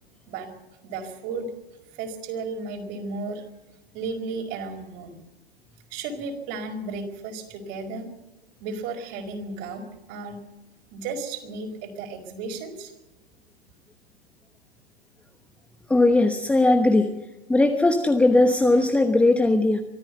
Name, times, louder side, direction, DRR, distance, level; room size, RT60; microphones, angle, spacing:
voice 1, 0.8-1.5 1.9-3.4 3.9-5.2 5.9-8.1 8.6-10.4 10.9-12.9, right 3 dB, 35° right, 5 dB, 5.0 m, -34 dB
voice 2, 15.9-17.1 17.5-19.8, left 2 dB, 5° left, 5 dB, 1.1 m, -19 dB
24.0 x 13.5 x 8.1 m, 1.0 s
hypercardioid pair, 120°, 30 cm